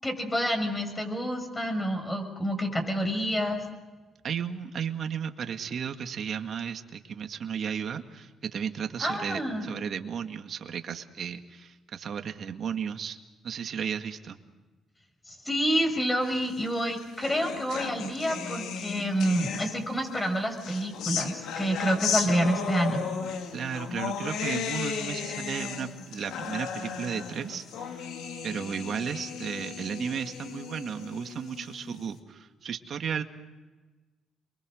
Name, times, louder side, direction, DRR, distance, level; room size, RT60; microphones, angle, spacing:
voice 1, 0.0-3.6 9.0-9.6 15.3-23.0, equal, 15° left, 5 dB, 6.7 m, -28 dB
voice 2, 4.2-13.2 13.4-14.4 23.5-28.1 28.4-33.2, right 7 dB, 60° right, 6 dB, 2.0 m, -34 dB
sound 1, 16.7-20.1 20.6-32.0, left 7 dB, 85° left, 2.7 m, -35 dB
28.5 x 23.5 x 6.5 m, 1.2 s
cardioid pair, 90°, 0 cm